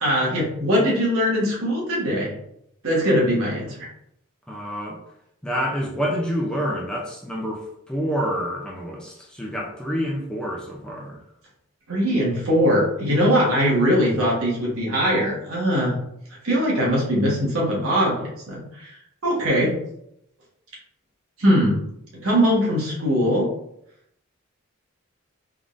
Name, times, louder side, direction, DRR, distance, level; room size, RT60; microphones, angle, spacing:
voice 1, 0.0-2.3 2.8-3.9 11.9-16.0 16.4-19.0 19.2-19.7 21.4-21.8 22.2-23.5, equal, 80° right, -4 dB, 1.4 m, -21 dB
voice 2, 4.5-5.0 5.4-11.2, equal, 5° left, -3 dB, 0.5 m, -28 dB
3.7 x 3.5 x 2.5 m, 0.75 s
head